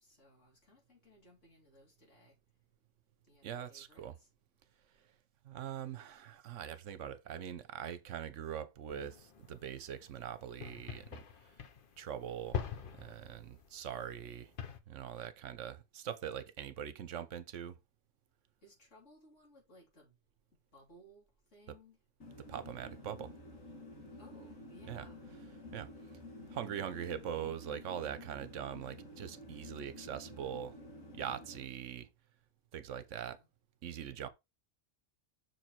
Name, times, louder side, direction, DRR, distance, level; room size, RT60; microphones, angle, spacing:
voice 1, 0.0-2.3 3.3-4.3 18.6-20.2 20.7-22.0 24.2-25.2 33.0-33.5, equal, 65° left, 3.8 m, -62 dB
voice 2, 3.4-4.2 5.4-11.2 12.0-12.6 12.9-14.5 14.9-17.8 22.4-23.3 24.9-25.1 25.7-25.9 26.5-30.8 31.1-32.1 32.7-33.4 33.8-34.3, right 9 dB, 70° right, 1.1 m, -42 dB
sound 1, 8.9-14.8, left 7 dB, 50° left, 0.8 m, -45 dB
sound 2, 22.2-31.7, left 1 dB, 85° left, 2.3 m, -51 dB
6.5 x 4.6 x 4.5 m
omnidirectional pair, 1.3 m